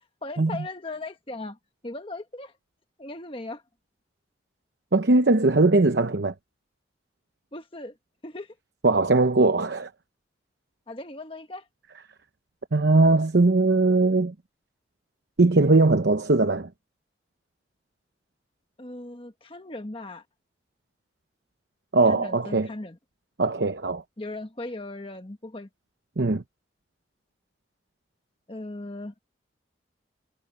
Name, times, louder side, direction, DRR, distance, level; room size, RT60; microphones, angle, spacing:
voice 1, 0.2-1.6 1.8-2.5 3.0-3.6 7.5-7.9 8.2-8.5 10.9-11.6 18.8-20.2 22.1-23.0 24.2-25.7 28.5-29.1, left 2 dB, 30° left, 1.3 m, -37 dB
voice 2, 4.9-6.3 8.8-9.9 12.7-14.3 15.4-16.7 21.9-22.7 23.4-24.0 26.2-26.4, right 3 dB, 65° right, 0.8 m, -20 dB
head